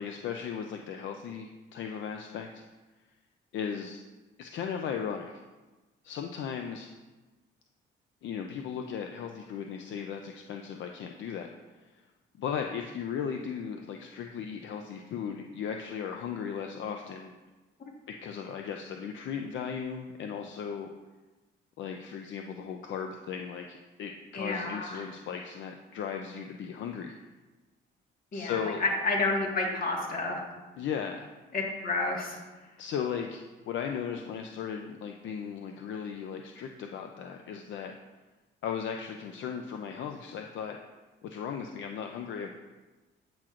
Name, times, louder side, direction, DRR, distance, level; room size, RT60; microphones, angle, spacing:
voice 1, 0.0-2.6 3.5-4.0 4.4-5.3 6.0-6.9 8.2-11.5 11.8-12.1 12.4-17.3 18.2-20.9 21.8-27.1 28.3-28.8 30.8-31.3 32.8-37.9 38.6-40.8 41.2-42.5, left 7 dB, 70° left, 4 dB, 0.5 m, -36 dB
voice 2, 24.3-25.0 28.3-30.4 31.5-32.4, left 2 dB, 45° left, -1 dB, 1.7 m, -30 dB
8.8 x 5.9 x 2.5 m, 1.2 s
cardioid pair, 90°, 20 cm